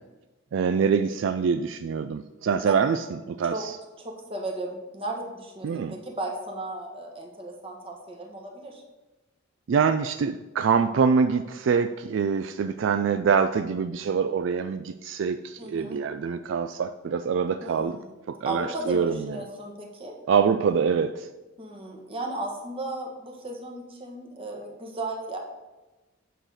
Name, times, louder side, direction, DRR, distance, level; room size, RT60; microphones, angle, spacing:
voice 1, 0.5-3.8 5.6-5.9 9.7-18.0 18.3-19.3 20.3-21.3, right 6 dB, 65° right, 10 dB, 0.3 m, -25 dB
voice 2, 4.0-8.8 15.6-16.0 17.6-18.1 18.4-20.1 21.6-25.4, right 2 dB, 25° right, 1 dB, 1.4 m, -35 dB
9.2 x 3.9 x 6.4 m, 1.1 s
head